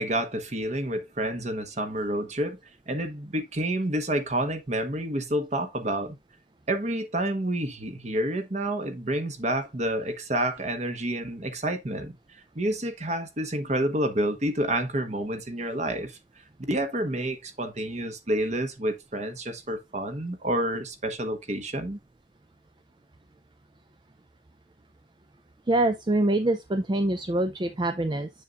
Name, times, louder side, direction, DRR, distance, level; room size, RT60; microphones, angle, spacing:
voice 1, 0.0-2.6 2.9-6.2 6.7-12.2 12.5-16.2 16.7-22.0, right 1 dB, 40° right, 1.2 m, -29 dB
voice 2, 25.7-28.3, right 1 dB, 25° right, 0.5 m, -25 dB
7.0 x 7.0 x 2.4 m
head